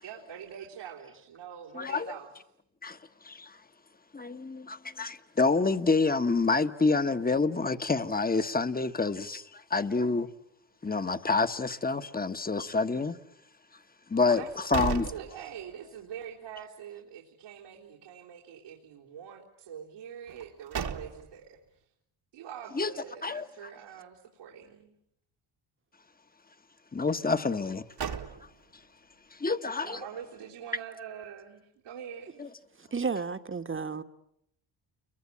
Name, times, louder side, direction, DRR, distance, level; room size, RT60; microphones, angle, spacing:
voice 1, 0.0-2.3 14.3-14.5 15.0-21.6 22.3-24.9 29.8-32.5, right 8 dB, 85° right, 3.8 m, -44 dB
voice 2, 1.7-2.1 2.8-3.0 3.2-3.6 4.1-10.3 10.8-13.2 14.1-14.4 14.7-15.1 22.7-22.9 23.2-23.5 26.9-28.2 29.3-30.0 32.4-32.5, left 3 dB, 20° left, 1.4 m, -28 dB
sound 1, 14.3-16.0 16.4-16.5 20.3-21.5 27.6-28.8, right 7 dB, 50° right, 1.9 m, -37 dB
voice 3, 32.8-34.0, right 5 dB, 25° right, 1.5 m, -32 dB
29.5 x 23.0 x 8.7 m
cardioid pair, 70°, 48 cm